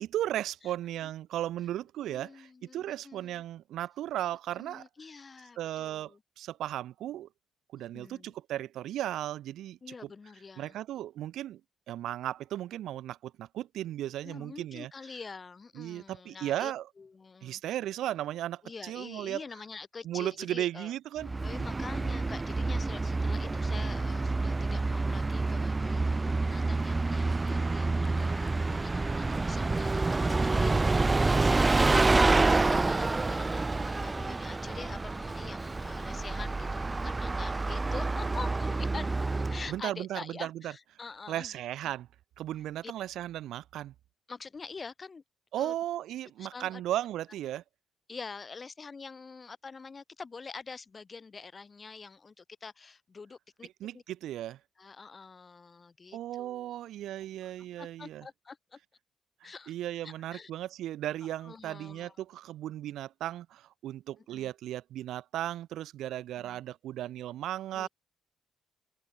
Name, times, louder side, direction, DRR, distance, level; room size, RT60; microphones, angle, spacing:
voice 1, 0.0-4.8 5.6-7.3 7.7-9.8 10.6-11.6 11.9-14.9 15.7-16.9 17.4-19.4 20.0-21.3 39.7-40.7 41.3-42.1 42.4-43.9 45.5-47.6 53.8-54.6 56.1-58.3 59.4-67.9, right 13 dB, 80° right, 1.5 m, -36 dB
voice 2, 2.0-3.4 4.6-6.2 7.8-8.3 9.8-10.7 14.2-16.7 17.0-17.6 18.6-20.9 21.4-39.1 39.5-41.6 42.8-42.9 44.3-45.2 45.6-45.7 46.4-46.8 48.1-53.7 53.9-54.0 54.8-56.7 57.4-57.5 57.8-58.8 59.4-59.7 60.0-60.5 61.4-62.1 64.3-64.5 66.4-66.6 67.7-67.9, left 4 dB, 35° left, 4.2 m, -46 dB
Bus, 21.2-39.8, right 3 dB, 20° right, 0.5 m, -28 dB
open air
cardioid pair, 90°, 0 cm